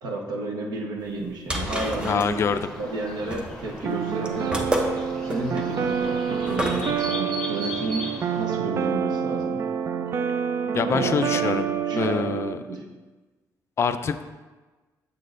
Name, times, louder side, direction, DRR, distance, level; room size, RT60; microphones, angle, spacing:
voice 1, 0.0-2.4 2.8-4.7 5.2-8.0 8.3-9.6 10.9-11.6 11.9-12.8, right 2 dB, 80° right, 0 dB, 1.1 m, -31 dB
sound 1, 1.1-7.0, equal, 15° right, 0.7 m, -31 dB
sound 2, 1.5-8.5, left 1 dB, 10° left, 1.4 m, -38 dB
voice 2, 2.0-2.7 10.7-11.7 12.0-12.6 13.8-14.2, left 6 dB, 45° left, 10 dB, 0.3 m, -25 dB
sound 3, 3.9-12.6, right 7 dB, 40° right, 0.3 m, -27 dB
7.3 x 6.4 x 2.6 m, 1.3 s
cardioid pair, 120°, 7 cm